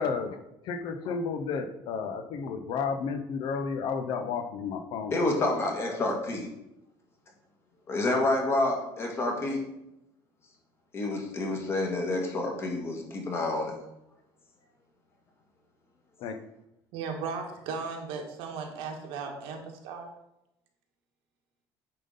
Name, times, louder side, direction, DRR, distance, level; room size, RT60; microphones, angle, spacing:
voice 1, 0.0-6.0 16.2-16.4, left 5 dB, 55° left, 8 dB, 0.8 m, -33 dB
voice 2, 5.1-6.5 7.9-9.6 10.9-13.7, left 2 dB, 30° left, 1 dB, 1.6 m, -28 dB
voice 3, 16.9-20.1, right 5 dB, 90° right, 2 dB, 1.6 m, -36 dB
9.2 x 3.8 x 5.5 m, 0.88 s
cardioid pair, 170°, 9 cm